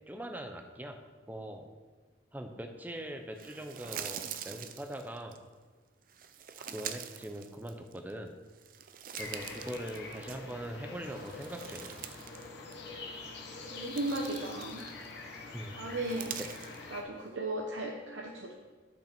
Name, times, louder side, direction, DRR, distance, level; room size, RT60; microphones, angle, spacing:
voice 1, 0.1-1.0 1.3-1.7 2.3-5.4 6.6-8.3 9.2-12.0 15.5-15.8 16.4-16.5, right 1 dB, 10° right, 4 dB, 0.7 m, -42 dB
sound 1, 3.4-5.4 6.1-8.1 8.5-10.7 11.0-12.5 12.7-12.9 13.5-15.2 15.9-16.8, right 9 dB, 50° right, 0.4 m, -44 dB
sound 2, 9.1-17.0, left 3 dB, 65° left, 1.2 m, -45 dB
voice 2, 13.7-14.8 15.7-16.4 16.9-18.7, right 1 dB, 90° right, 1 dB, 0.8 m, -36 dB
10.5 x 5.9 x 4.4 m, 1.3 s
head